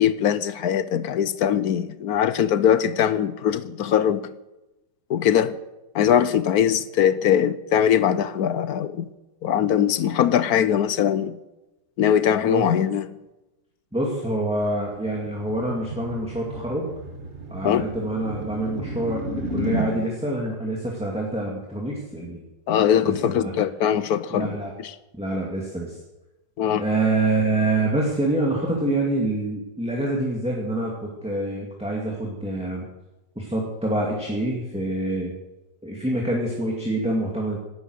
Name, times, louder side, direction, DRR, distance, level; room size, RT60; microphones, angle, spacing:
voice 1, 0.0-4.2 5.1-5.6 5.9-9.1 9.4-11.4 12.0-13.0 17.6-17.8 22.7-24.5 26.6-26.8, left 9 dB, 65° left, 1.1 m, -21 dB
voice 2, 13.9-16.9 17.5-22.5 23.0-23.5 24.3-24.7 25.1-26.0 26.8-32.8 33.4-35.3 35.8-37.6, right 2 dB, 5° right, 2.3 m, -26 dB
sound 1, 14.6-19.9, right 1 dB, 40° right, 2.1 m, -33 dB
17.5 x 12.0 x 6.5 m
omnidirectional pair, 2.0 m